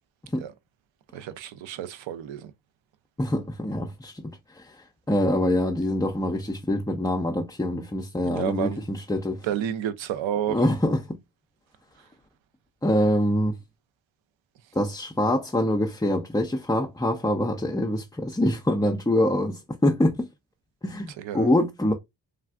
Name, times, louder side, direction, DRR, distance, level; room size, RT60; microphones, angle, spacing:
voice 1, 1.1-2.5 8.2-8.8 9.4-10.6 21.2-21.5, right 10 dB, 75° right, 0.5 m, -30 dB
voice 2, 3.2-4.8 5.1-9.4 10.5-11.2 12.8-13.6 14.7-20.3 20.8-21.9, left 1 dB, 10° left, 0.4 m, -25 dB
3.4 x 2.3 x 2.3 m
supercardioid pair, 50°, 46 cm